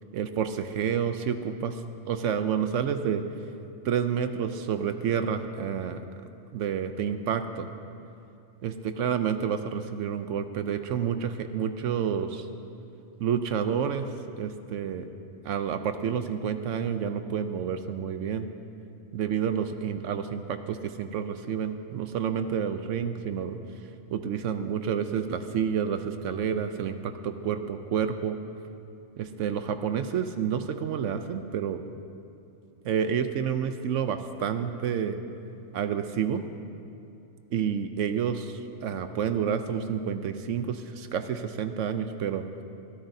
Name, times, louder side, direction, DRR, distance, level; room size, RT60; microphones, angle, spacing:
voice 1, 0.1-1.8 2.1-3.2 3.8-6.0 6.5-7.7 8.6-12.5 13.2-14.1 14.4-15.1 15.4-18.5 19.1-23.6 24.1-28.4 29.2-31.8 32.8-35.2 35.7-36.4 37.5-42.4, right 7 dB, 75° right, 9 dB, 0.9 m, -29 dB
23.0 x 13.0 x 2.7 m, 2.6 s
omnidirectional pair, 1.3 m